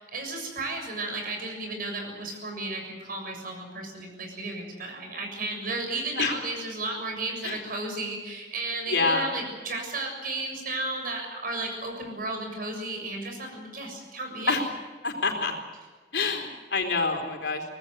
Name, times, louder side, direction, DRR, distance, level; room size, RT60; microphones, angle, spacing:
voice 1, 0.0-14.6, right 2 dB, 55° right, 4 dB, 7.0 m, -33 dB
voice 2, 8.9-9.2 14.5-14.6 15.0-15.5 16.1-17.6, left 4 dB, 70° left, 3 dB, 4.1 m, -26 dB
24.5 x 19.0 x 8.1 m, 1.4 s
head